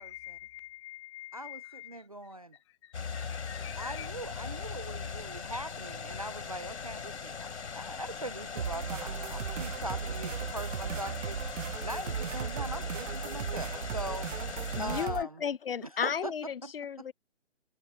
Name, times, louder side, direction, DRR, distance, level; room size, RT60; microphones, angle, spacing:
voice 1, 0.0-4.1, left 14 dB, 25° left, 1.4 m, -47 dB
voice 2, 1.3-2.6 3.8-14.3 14.8-15.4 15.8-16.7 17.0-17.1, right 1 dB, 30° right, 0.4 m, -41 dB
sound 1, 2.9-15.1, left 6 dB, 65° left, 4.5 m, -40 dB
sound 2, 8.6-15.2, right 7 dB, 85° right, 0.9 m, -36 dB
voice 3, 14.7-17.1, left 7 dB, 50° left, 0.8 m, -34 dB
hypercardioid pair, 160°, 36 cm